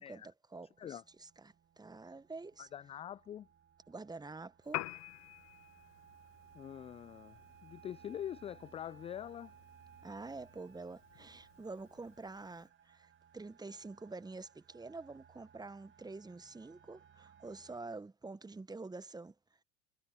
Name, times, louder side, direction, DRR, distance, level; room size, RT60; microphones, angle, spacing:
voice 1, 0.0-2.7 3.9-4.9 10.0-19.3, right 3 dB, 10° right, 1.2 m, -47 dB
sound 1, 0.7-17.8, right 8 dB, 35° right, 2.4 m, -62 dB
voice 2, 2.6-3.5 6.5-9.5, left 10 dB, 20° left, 0.3 m, -45 dB
Piano, 4.6-12.7, left 18 dB, 45° left, 0.9 m, -50 dB
hypercardioid pair, 70°, 36 cm